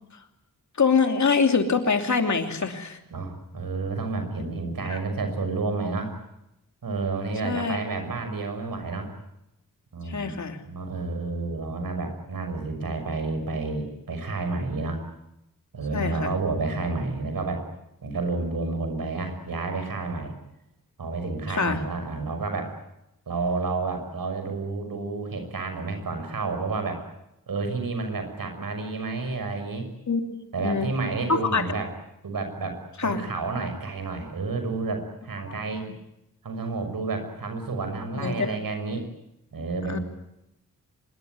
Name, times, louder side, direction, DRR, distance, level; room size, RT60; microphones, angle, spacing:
voice 1, 0.8-3.0 4.9-5.0 7.4-7.8 10.0-10.6 15.9-16.3 21.5-21.8 30.1-30.2 30.6-30.9 31.3-31.6 33.0-33.2 38.1-38.6 39.9-40.0, left 5 dB, 55° left, 5 dB, 2.8 m, -24 dB
voice 2, 3.1-6.1 6.8-9.1 9.9-10.3 10.7-15.0 15.7-17.6 18.0-20.3 21.0-22.7 23.3-27.0 27.5-29.9 30.5-31.9 32.2-35.8 36.4-39.1 39.5-40.0, right 3 dB, 75° right, 6 dB, 6.2 m, -30 dB
25.0 x 22.0 x 9.5 m, 0.87 s
wide cardioid pair, 160°, 35 cm